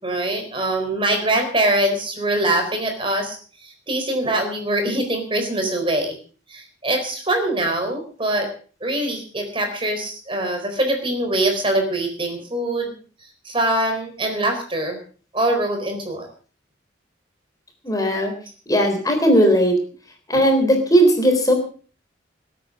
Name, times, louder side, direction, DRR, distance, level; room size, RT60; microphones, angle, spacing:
voice 1, 0.0-3.4 3.6-6.1 6.5-8.5 8.8-12.9 13.4-15.0 15.3-16.3, right 1 dB, 30° right, 4 dB, 4.1 m, -23 dB
voice 2, 17.8-18.3 18.7-19.7 20.3-21.5, equal, 20° left, 4 dB, 3.7 m, -17 dB
20.0 x 9.2 x 6.4 m, 0.42 s
head